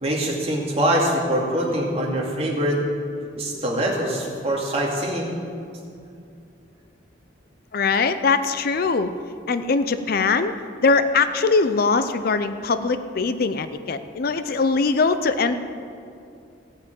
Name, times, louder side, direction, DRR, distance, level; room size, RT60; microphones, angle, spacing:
voice 1, 0.0-2.8 3.4-5.4, right 1 dB, 35° right, -2 dB, 2.3 m, -23 dB
voice 2, 7.7-9.1 9.5-10.5 10.8-15.6, left 4 dB, 55° left, 11 dB, 0.5 m, -21 dB
15.5 x 5.9 x 9.0 m, 2.5 s
head